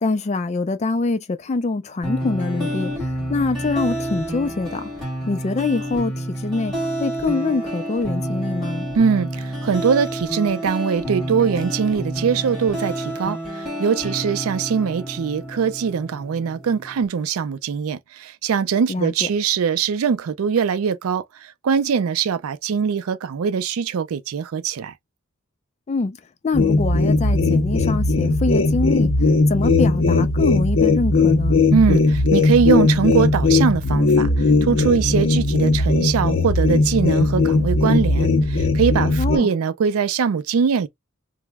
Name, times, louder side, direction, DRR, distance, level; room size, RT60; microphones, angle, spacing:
voice 1, 0.0-4.8 5.3-6.7 7.0-8.9 18.9-19.3 25.9-26.2 26.4-31.6 39.2-39.5, left 3 dB, 30° left, 0.3 m, -24 dB
sound 1, 2.0-17.0, right 1 dB, ahead, 1.7 m, -29 dB
voice 2, 9.0-24.9 31.7-40.9, right 6 dB, 75° right, 0.4 m, -22 dB
sound 2, 26.5-39.4, left 3 dB, 60° left, 0.6 m, -18 dB
2.9 x 2.0 x 3.4 m
head